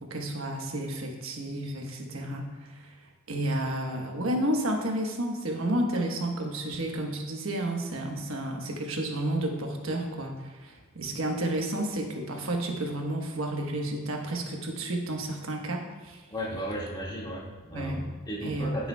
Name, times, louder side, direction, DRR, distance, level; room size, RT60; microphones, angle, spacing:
voice 1, 0.0-2.9 3.3-16.2 17.7-18.1 18.4-18.7, right 1 dB, 75° right, 1 dB, 1.2 m, -31 dB
voice 2, 16.3-18.9, equal, 20° left, -4 dB, 2.0 m, -35 dB
15.0 x 6.9 x 2.3 m, 1.3 s
head